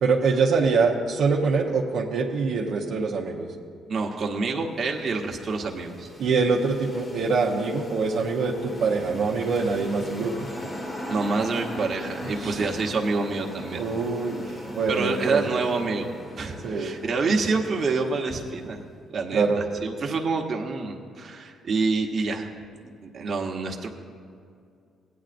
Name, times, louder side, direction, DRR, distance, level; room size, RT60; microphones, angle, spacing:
voice 1, 0.0-3.5 6.2-10.5 12.4-12.6 13.7-15.6 16.6-16.9 19.3-19.7, right 4 dB, 75° right, -1 dB, 0.9 m, -24 dB
voice 2, 3.9-6.1 11.1-13.8 14.9-16.1 16.4-18.8 19.1-19.4 19.8-22.5 22.8-23.9, right 4 dB, 50° right, 1 dB, 1.1 m, -27 dB
sound 1, 4.4-18.9, left 1 dB, 30° left, 1.5 m, -39 dB
16.5 x 9.5 x 2.6 m, 2.3 s
cardioid pair, 90°, 0 cm